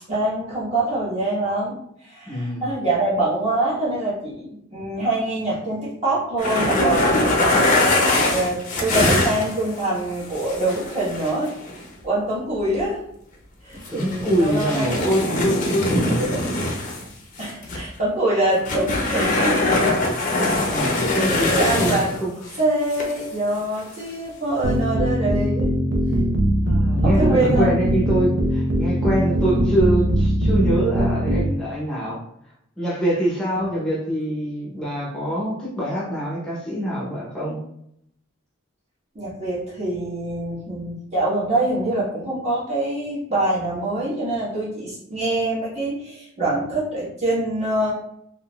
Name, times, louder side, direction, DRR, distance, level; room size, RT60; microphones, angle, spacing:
voice 1, 0.1-11.5 12.0-13.0 13.6-15.1 16.3-16.4 17.4-19.6 21.5-22.2 22.6-25.7 27.0-27.8 33.6-33.8 39.1-47.9, right 2 dB, 35° right, -8 dB, 1.4 m, -24 dB
voice 2, 2.3-2.6 13.9-16.5 20.4-22.3 26.6-32.2 32.8-37.6, right 1 dB, 5° left, -6 dB, 0.7 m, -24 dB
sound 1, 6.4-9.8 10.3-11.8 13.8-17.0 17.4-17.8 18.6-22.2 22.5-22.6 22.9-23.3 23.6-23.8 24.7-24.8, left 2 dB, 40° left, 0.6 m, -22 dB
sound 2, 24.6-31.5, equal, 70° right, 0.5 m, -21 dB
3.6 x 2.6 x 2.3 m, 0.73 s
head